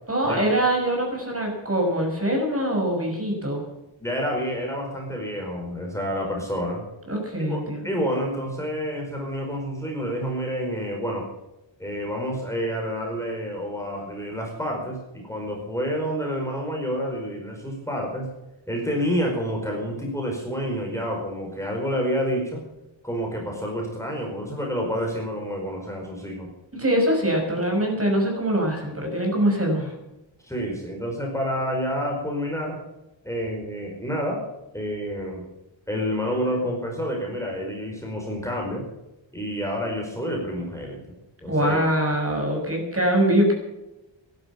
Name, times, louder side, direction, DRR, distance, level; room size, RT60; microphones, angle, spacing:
voice 1, 0.1-3.6 7.1-7.9 26.7-30.0 41.5-43.5, right 1 dB, 30° right, 1 dB, 6.2 m, -23 dB
voice 2, 4.0-6.8 7.5-11.3 11.8-18.3 18.7-22.6 23.0-26.5 30.4-32.8 33.2-34.4 34.7-35.4 35.9-38.8 39.3-41.2 41.4-41.8, equal, 5° left, 0 dB, 4.8 m, -28 dB
14.5 x 12.0 x 7.1 m, 0.95 s
wide cardioid pair, 105°, 47 cm